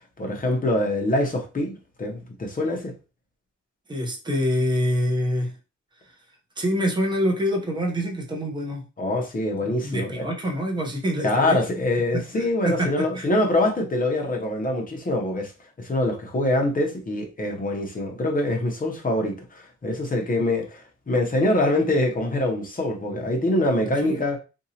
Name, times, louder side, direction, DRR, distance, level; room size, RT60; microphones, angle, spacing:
voice 1, 0.2-2.9 9.0-10.2 11.2-15.5 15.8-24.4, left 1 dB, 30° left, 0.7 m, -24 dB
voice 2, 3.9-5.5 6.6-8.8 9.6-11.6 12.1-13.3 23.2-23.3 24.0-24.2, equal, 15° right, 0.7 m, -26 dB
2.8 x 2.7 x 2.7 m
wide cardioid pair, 160°, 29 cm